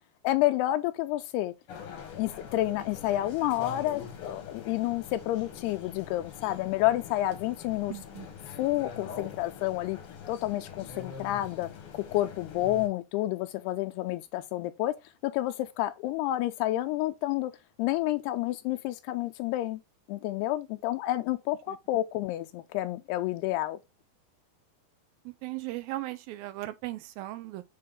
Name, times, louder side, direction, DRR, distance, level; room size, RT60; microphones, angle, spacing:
voice 1, 0.2-1.5 2.1-8.0 8.6-10.0 10.3-14.9 15.2-17.5 17.8-19.8 20.1-23.8, left 15 dB, 85° left, 2.6 m, -29 dB
sound 1, 1.7-12.9, left 7 dB, 60° left, 1.5 m, -44 dB
voice 2, 7.9-8.3 25.4-27.6, right 17 dB, 80° right, 2.1 m, -37 dB
7.7 x 3.6 x 3.7 m
omnidirectional pair, 4.7 m